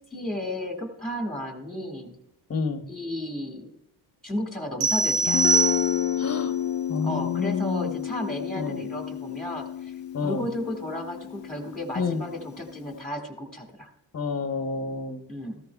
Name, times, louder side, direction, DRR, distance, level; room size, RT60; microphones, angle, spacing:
voice 1, 0.1-2.2 2.9-3.7 4.2-5.4 7.0-9.9 10.2-13.9 15.3-15.6, left 1 dB, ahead, 2 dB, 1.8 m, -33 dB
voice 2, 2.5-2.8 6.2-6.5 6.9-8.0 8.6-8.8 10.1-10.5 11.9-12.2 14.1-15.2, left 5 dB, 30° left, 8 dB, 0.9 m, -29 dB
sound 1, 4.8-6.3, right 3 dB, 60° right, 1.3 m, -23 dB
Guitar, 5.3-13.0, left 10 dB, 65° left, 0.5 m, -31 dB
14.5 x 14.0 x 2.3 m, 0.81 s
cardioid pair, 95°, 48 cm